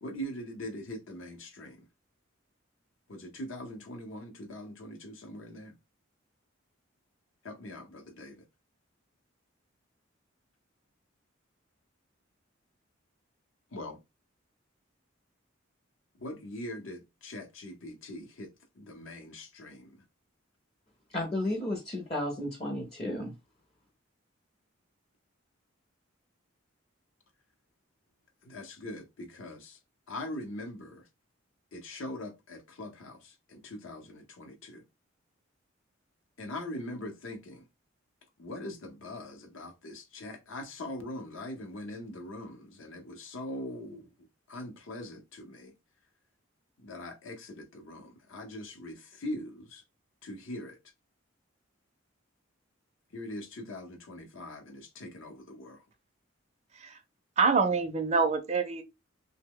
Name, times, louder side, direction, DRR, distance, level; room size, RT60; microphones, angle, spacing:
voice 1, 0.0-1.9 3.1-5.7 7.4-8.4 13.7-14.0 16.2-20.0 28.4-29.8 30.1-31.1 31.7-34.8 36.4-37.6 38.4-44.1 44.5-45.7 46.8-49.8 50.2-50.8 53.1-55.8, left 1 dB, 75° left, 0.7 m, -42 dB
voice 2, 21.1-23.3, left 1 dB, 30° left, 0.5 m, -33 dB
voice 3, 57.4-58.8, right 4 dB, 35° right, 0.4 m, -26 dB
2.9 x 2.1 x 3.5 m
head